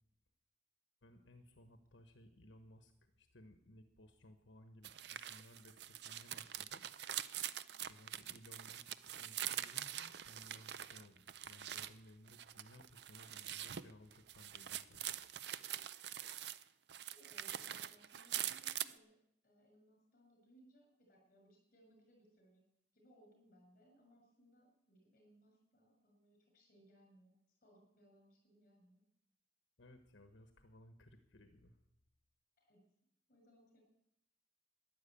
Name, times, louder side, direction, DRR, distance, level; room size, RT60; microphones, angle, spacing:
voice 1, 1.0-6.8 7.9-15.0 29.8-31.8, left 1 dB, 85° left, 7 dB, 1.2 m, -61 dB
Office File Folder, 4.8-11.9 12.3-16.6 16.9-18.9, right 11 dB, 60° right, 0.5 m, -44 dB
voice 2, 17.1-19.2 19.4-22.6 22.9-29.0 32.6-32.8 33.3-33.8, right 1 dB, 45° left, 2 dB, 6.2 m, -67 dB
12.5 x 10.5 x 8.7 m, 0.81 s
head